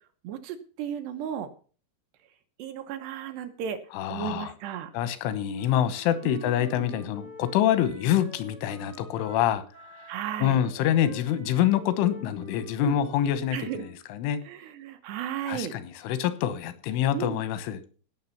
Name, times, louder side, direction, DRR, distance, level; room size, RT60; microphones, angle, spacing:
voice 1, 0.2-1.5 2.6-3.8 4.1-4.9 6.2-7.0 10.1-10.6 12.8-13.0 13.5-13.8 14.4-15.7 17.1-17.4, right 9 dB, 75° right, 8 dB, 2.8 m, -34 dB
voice 2, 3.9-4.5 4.9-9.6 10.4-14.4 15.5-17.8, left 11 dB, 90° left, 13 dB, 3.5 m, -26 dB
Wind instrument woodwind instrument, 5.5-14.0, left 1 dB, 30° right, 0.9 m, -48 dB
17.0 x 6.3 x 5.8 m, 0.40 s
omnidirectional pair, 5.4 m